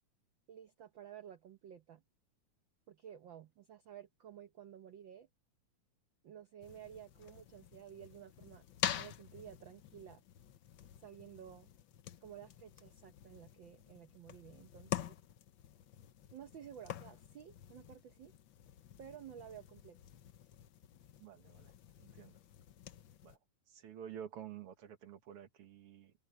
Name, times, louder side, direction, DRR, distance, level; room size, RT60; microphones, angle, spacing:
voice 1, 0.5-2.0 2.9-5.3 6.2-8.6 8.9-10.2 11.0-11.7 12.2-15.2 16.3-18.3 19.0-20.0, right 9 dB, 85° right, 1.0 m, -53 dB
sound 1, 6.6-23.4, left 11 dB, 85° left, 1.0 m, -47 dB
voice 2, 21.2-21.7 22.0-22.4 23.2-23.4 23.7-26.1, right 9 dB, 55° right, 2.0 m, -50 dB
omnidirectional pair, 3.4 m